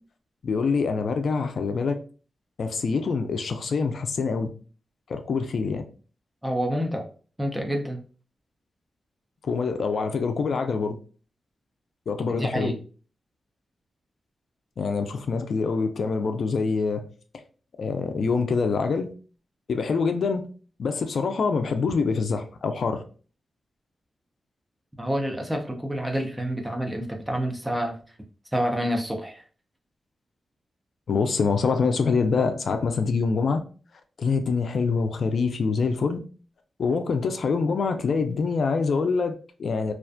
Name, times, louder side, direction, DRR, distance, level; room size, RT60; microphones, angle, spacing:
voice 1, 0.4-2.0 2.6-4.5 5.1-5.8 9.4-11.0 12.1-12.7 14.8-17.0 17.8-19.1 19.7-20.5 20.8-23.0 31.1-33.6 34.2-36.2 36.8-39.9, left 4 dB, 70° left, 0.3 m, -25 dB
voice 2, 6.4-7.1 7.4-8.0 12.3-12.8 25.0-27.9 28.5-29.4, equal, 10° right, 0.5 m, -28 dB
2.4 x 2.2 x 2.5 m
wide cardioid pair, 105°, 0 cm